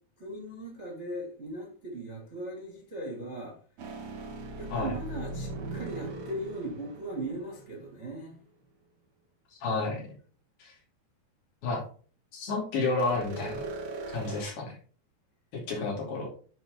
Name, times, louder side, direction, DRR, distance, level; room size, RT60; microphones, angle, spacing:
voice 1, 0.2-3.5 4.6-8.3, right 1 dB, 25° right, -3 dB, 1.7 m, -38 dB
sound 1, 3.8-8.0 13.0-14.4, right 2 dB, 75° right, 1.5 m, -39 dB
voice 2, 9.5-10.1 10.6-10.7 11.6-11.8 12.3-13.7 14.1-14.8 15.5-16.3, left 3 dB, 65° left, -3 dB, 4.7 m, -31 dB
10.0 x 4.5 x 3.8 m, 0.42 s
omnidirectional pair, 4.9 m